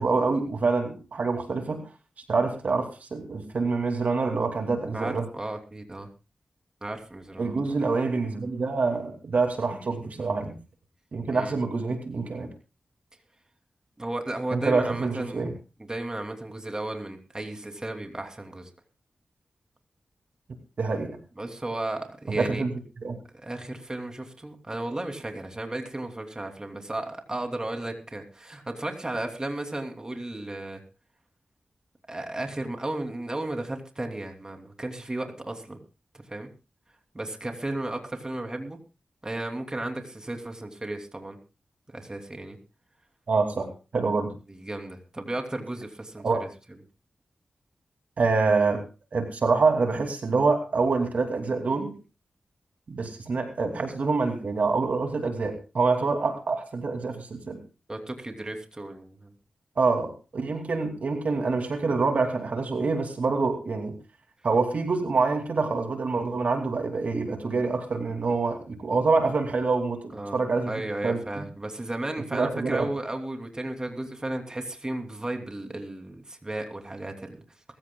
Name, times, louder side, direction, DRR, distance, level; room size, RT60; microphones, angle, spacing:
voice 1, 0.0-1.8 2.3-5.3 7.4-10.6 11.1-12.5 14.5-15.5 20.8-21.2 22.4-22.7 23.0-23.2 43.3-44.3 46.2-46.4 48.2-48.8 49.1-51.9 52.9-57.6 59.8-63.9 64.4-70.7 71.0-71.4 72.3-72.8, right 4 dB, 70° right, 4 dB, 2.6 m, -26 dB
voice 2, 4.9-6.1 6.8-7.8 11.3-11.6 14.0-15.5 15.8-18.7 21.4-22.6 23.4-30.8 32.1-35.8 36.1-36.5 37.1-38.8 39.2-41.4 41.9-42.6 44.5-46.5 56.0-56.1 57.9-59.3 70.1-70.4 70.6-77.4, right 1 dB, 25° right, 4 dB, 2.9 m, -34 dB
22.5 x 15.0 x 2.3 m, 0.31 s
cardioid pair, 50°, 3 cm